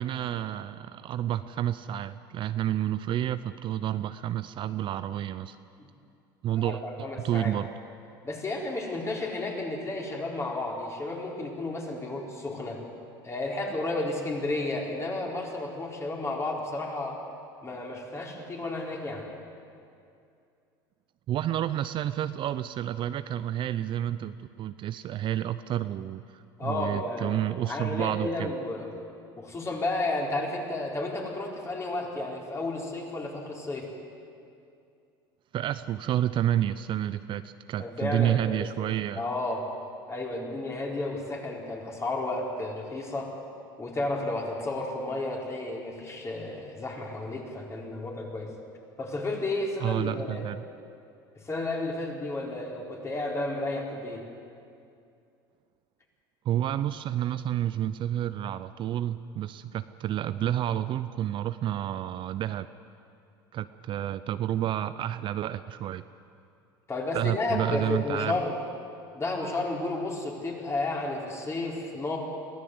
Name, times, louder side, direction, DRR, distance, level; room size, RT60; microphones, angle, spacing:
voice 1, 0.0-5.6 6.4-6.8 7.2-7.7 21.3-28.5 35.5-39.2 49.8-50.6 56.4-62.7 63.5-66.0 67.1-68.4, right 11 dB, 45° right, 13 dB, 0.6 m, -30 dB
voice 2, 6.6-7.6 8.2-12.8 13.2-17.2 17.6-19.3 26.6-28.9 29.4-33.9 37.8-38.7 39.1-39.6 40.1-43.3 43.8-48.5 49.0-50.5 51.4-54.2 66.9-68.6 69.1-72.2, left 2 dB, 25° left, -1 dB, 4.4 m, -32 dB
22.5 x 15.0 x 8.0 m, 2.5 s
hypercardioid pair, 90°, 12 cm